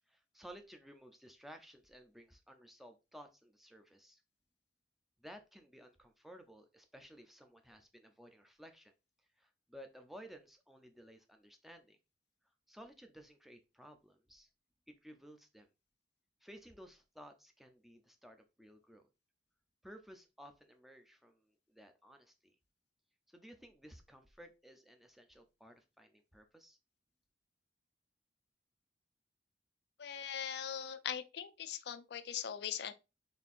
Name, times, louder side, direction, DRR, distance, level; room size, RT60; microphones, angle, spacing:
voice 1, 0.1-4.2 5.2-8.9 9.4-12.0 12.7-14.5 14.9-15.7 16.4-19.1 19.8-22.6 23.3-26.8, equal, ahead, 0.5 m, -56 dB
voice 2, 30.0-32.9, left 9 dB, 65° left, 0.4 m, -41 dB
4.2 x 3.4 x 2.4 m
head